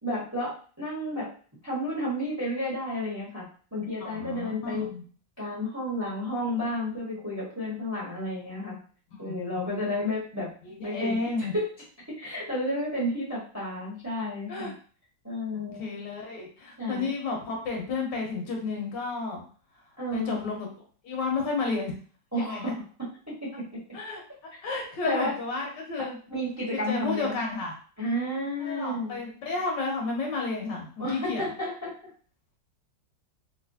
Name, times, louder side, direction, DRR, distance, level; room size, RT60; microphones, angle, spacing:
voice 1, 0.0-1.3 1.6-3.4 3.7-4.9 5.4-8.7 9.2-10.5 10.8-11.6 12.2-14.7 15.2-15.8 16.8-17.1 20.0-20.6 22.3-22.7 23.4-23.5 25.0-25.4 26.0-27.3 28.0-29.2 31.0-31.9, left 1 dB, 10° right, -7 dB, 1.0 m, -31 dB
voice 2, 4.0-5.0 9.2-9.9 10.6-11.5 14.5-14.7 15.8-19.4 20.1-20.7 21.0-21.9 22.3-22.7 23.9-24.2 24.6-26.2 26.9-27.7 28.6-31.4, left 3 dB, 75° left, 0 dB, 1.4 m, -32 dB
3.1 x 2.7 x 2.7 m, 0.42 s
omnidirectional pair, 2.0 m